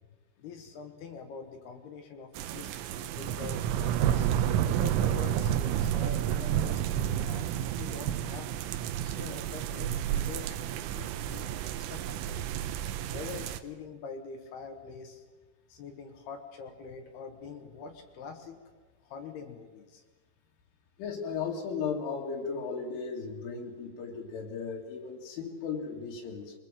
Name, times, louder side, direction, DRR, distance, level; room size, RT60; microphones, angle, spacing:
voice 1, 0.4-4.3 4.7-8.5 9.0-12.6 13.1-15.2 15.7-18.6 19.1-20.0, left 5 dB, 65° left, 5 dB, 3.2 m, -45 dB
sound 1, 2.4-13.6, right 10 dB, 90° right, 3.6 m, -30 dB
voice 2, 21.0-26.5, left 5 dB, 80° left, -3 dB, 4.8 m, -36 dB
24.0 x 22.0 x 7.5 m, 1.3 s
omnidirectional pair, 5.6 m